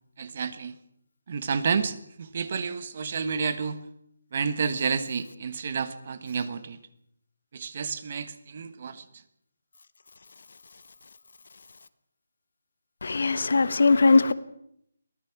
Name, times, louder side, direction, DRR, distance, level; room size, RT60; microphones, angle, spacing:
voice 1, 0.2-0.7 1.3-3.8 4.3-6.8 7.5-9.0, right 5 dB, 35° right, 1.3 m, -30 dB
voice 2, 13.0-14.3, left 3 dB, 55° left, 1.2 m, -20 dB
23.5 x 18.0 x 6.0 m
hypercardioid pair, 175°, 0 cm